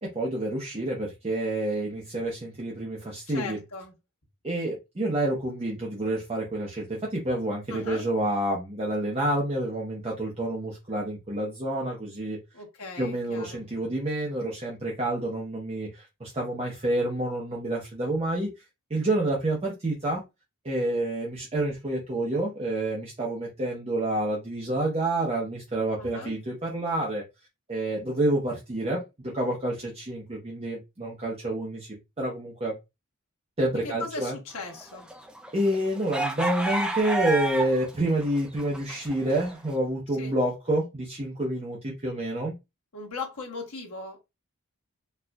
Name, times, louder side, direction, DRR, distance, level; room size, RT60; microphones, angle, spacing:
voice 1, 0.0-3.6 4.4-12.4 13.0-18.6 18.9-20.2 20.6-27.2 27.7-32.7 33.6-34.4 35.5-42.5, right 1 dB, 25° right, 0.7 m, -28 dB
voice 2, 3.3-3.9 7.7-8.1 12.5-13.6 26.0-26.4 33.8-35.1 40.2-40.4 42.9-44.2, left 4 dB, 75° left, 1.2 m, -38 dB
sound 1, 34.7-37.9 38.2-39.5, right 1 dB, 5° right, 0.3 m, -30 dB
4.3 x 2.4 x 2.2 m
head